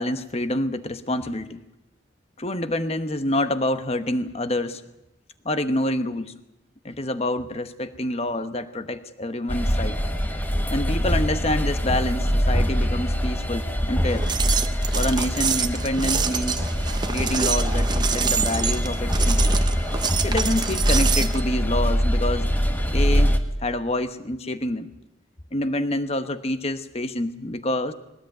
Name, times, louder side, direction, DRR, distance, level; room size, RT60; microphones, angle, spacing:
voice 1, 0.0-1.6 2.4-4.8 5.4-6.3 6.8-10.0 10.7-14.3 14.9-16.7 17.0-19.5 20.2-22.5 22.9-23.3 23.6-24.9 25.5-27.9, left 1 dB, 30° left, 10 dB, 1.2 m, -27 dB
sound 1, 9.5-23.4, equal, 10° left, 1.3 m, -23 dB
sound 2, 14.1-21.4, right 6 dB, 20° right, 1.0 m, -27 dB
21.5 x 19.0 x 9.1 m, 0.91 s
head